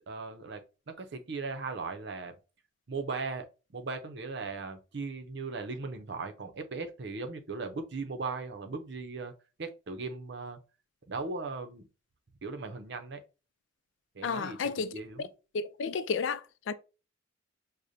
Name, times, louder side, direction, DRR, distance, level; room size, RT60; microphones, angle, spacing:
voice 1, 0.1-2.4 2.9-9.3 9.6-10.6 11.1-11.9 12.4-13.2 14.1-15.3, right 4 dB, 60° right, 0.6 m, -38 dB
voice 2, 14.2-14.9 15.5-16.7, left 5 dB, 75° left, 0.4 m, -32 dB
6.3 x 2.1 x 2.6 m
head